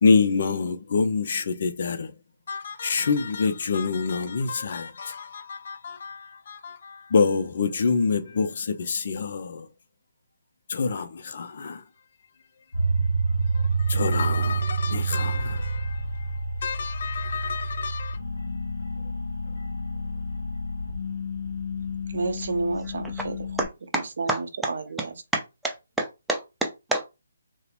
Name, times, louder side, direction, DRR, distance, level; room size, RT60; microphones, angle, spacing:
voice 1, 0.0-2.1 2.5-9.7 10.7-11.8 13.5-16.0 16.6-18.2, left 5 dB, 55° left, 0.4 m, -26 dB
sound 1, 12.7-23.7, right 2 dB, 75° left, 0.8 m, -29 dB
voice 2, 22.1-23.5 23.9-25.1, right 3 dB, 60° right, 0.5 m, -30 dB
voice 3, 25.3-27.1, right 2 dB, 5° right, 0.4 m, -28 dB
2.8 x 2.0 x 2.4 m
figure-of-eight pair, 150°, 0 cm